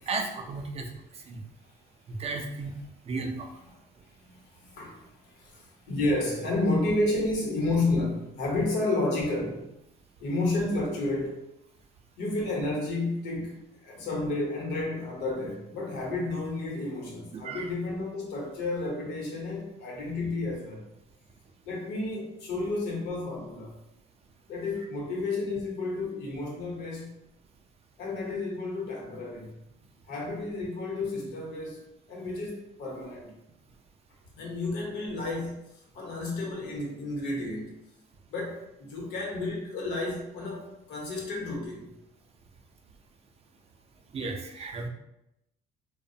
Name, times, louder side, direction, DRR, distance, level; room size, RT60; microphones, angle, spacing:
voice 1, 0.1-0.9 1.3-1.4 2.1-2.7 3.1-3.5 17.3-17.7 44.1-44.9, right 3 dB, 35° right, 3 dB, 0.4 m, -34 dB
voice 2, 4.1-9.7 10.2-11.5 12.2-20.8 21.6-23.8 24.5-27.1 28.0-29.5 30.1-33.3 34.4-37.7 38.3-41.9, left 2 dB, 80° left, -1 dB, 0.8 m, -31 dB
2.6 x 2.0 x 2.6 m, 0.86 s
cardioid pair, 110°, 17 cm